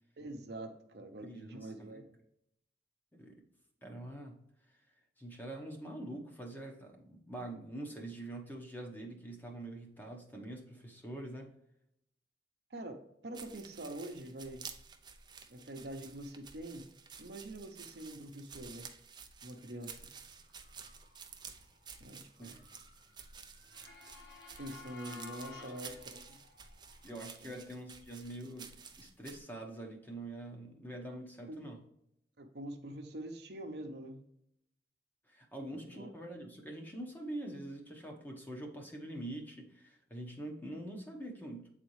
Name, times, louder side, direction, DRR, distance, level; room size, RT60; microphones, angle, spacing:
voice 1, 0.2-2.2 12.7-14.6 15.5-16.9 17.2-18.9 19.4-20.0 22.0-22.5 24.6-26.0 26.3-26.4 27.4-27.6 31.5-31.7 32.4-34.2 35.7-36.1, right 1 dB, 65° right, 4 dB, 0.9 m, -45 dB
voice 2, 1.2-2.0 3.1-3.4 3.8-4.4 4.7-4.8 5.2-11.5 22.4-22.6 25.6-25.7 27.0-31.8 35.3-41.7, right 1 dB, 10° left, 1 dB, 1.0 m, -45 dB
sound 1, 13.3-29.4, right 6 dB, 25° right, 0.5 m, -52 dB
Motor vehicle (road) / Siren, 19.9-27.2, left 5 dB, 75° left, 1.4 m, -55 dB
8.2 x 4.1 x 3.2 m, 0.76 s
head